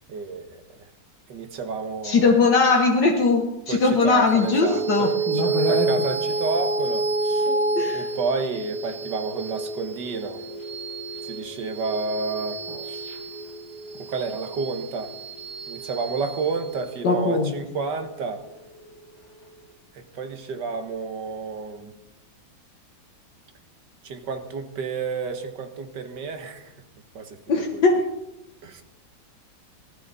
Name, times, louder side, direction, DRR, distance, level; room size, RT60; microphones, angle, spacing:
voice 1, 0.1-0.9 1.3-2.4 3.7-7.5 7.9-10.4 11.3-13.1 14.0-15.1 15.7-18.4 19.9-21.9 24.0-26.7 27.2-27.4 27.7-27.8 28.6-28.8, right 4 dB, 65° right, 7 dB, 2.0 m, -31 dB
voice 2, 2.0-5.9 7.5-8.0 12.7-12.8 17.0-17.5 27.5-28.1, left 4 dB, 65° left, 1 dB, 1.8 m, -20 dB
sound 1, 4.3-19.0, right 3 dB, 50° left, 2.9 m, -29 dB
19.0 x 13.5 x 4.1 m, 0.93 s
omnidirectional pair, 2.1 m